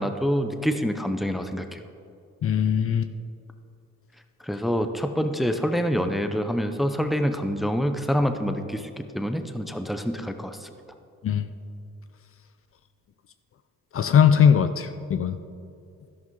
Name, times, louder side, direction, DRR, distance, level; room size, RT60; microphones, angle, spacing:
voice 1, 0.0-1.8 4.4-10.7, equal, ahead, 7 dB, 0.7 m, -26 dB
voice 2, 2.4-3.1 11.2-11.5 13.9-15.4, left 8 dB, 45° left, 10 dB, 0.6 m, -20 dB
12.0 x 11.0 x 3.8 m, 2.5 s
cardioid pair, 90°, 30 cm